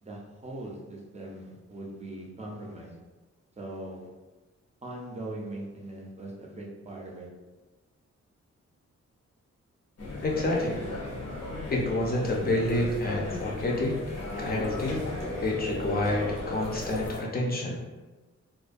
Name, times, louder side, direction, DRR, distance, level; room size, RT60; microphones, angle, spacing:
voice 1, 0.0-2.9 3.6-4.1 4.8-7.3, right 1 dB, 25° right, -2 dB, 0.5 m, -40 dB
sound 1, 10.0-17.2, left 2 dB, 65° left, 0.8 m, -36 dB
voice 2, 10.2-10.8 11.7-14.0 14.4-15.1 15.4-17.8, left 1 dB, 30° left, -2 dB, 0.5 m, -28 dB
2.4 x 2.1 x 2.5 m, 1.2 s
wide cardioid pair, 105°, 29 cm